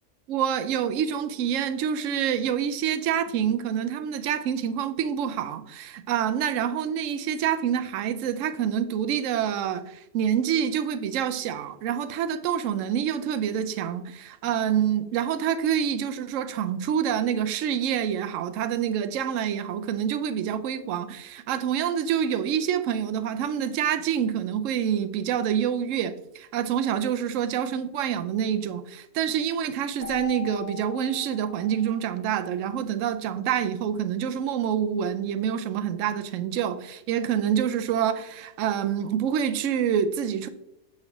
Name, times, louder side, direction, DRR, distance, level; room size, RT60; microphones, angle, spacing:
voice 1, 0.3-40.5, right 9 dB, 70° right, 0.9 m, -27 dB
Keyboard (musical), 30.0-32.6, left 8 dB, 30° left, 2.8 m, -41 dB
7.6 x 5.7 x 3.0 m
omnidirectional pair, 1.5 m